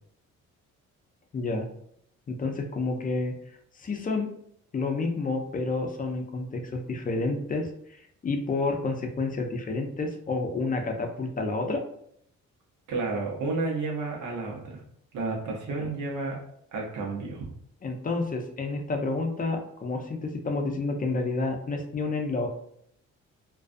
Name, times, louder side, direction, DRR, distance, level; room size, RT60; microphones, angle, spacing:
voice 1, 1.3-1.7 2.3-3.3 3.8-4.3 4.7-7.7 8.2-11.8 15.7-15.9 17.8-22.5, left 3 dB, 30° left, 4 dB, 0.5 m, -29 dB
voice 2, 12.9-14.8 15.1-16.4 16.7-17.5, right 3 dB, 80° right, 0 dB, 0.8 m, -31 dB
2.3 x 2.3 x 2.5 m, 0.70 s
cardioid pair, 90°, 30 cm